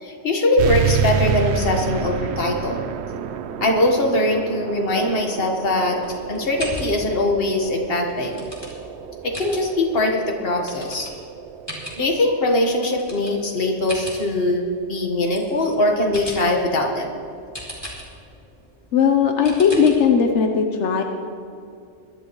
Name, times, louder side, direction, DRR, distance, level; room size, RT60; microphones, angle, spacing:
voice 1, 0.0-2.8 3.6-6.0 6.3-8.5 9.2-11.1 12.0-17.1, left 1 dB, 55° left, 1 dB, 1.7 m, -21 dB
sound 1, 0.6-15.7, right 8 dB, 75° right, 0.9 m, -30 dB
sound 2, 6.0-20.3, left 1 dB, 20° left, 2.6 m, -39 dB
voice 2, 18.9-21.0, left 6 dB, 85° left, 4 dB, 1.2 m, -17 dB
22.0 x 11.5 x 3.1 m, 2.5 s
omnidirectional pair, 1.2 m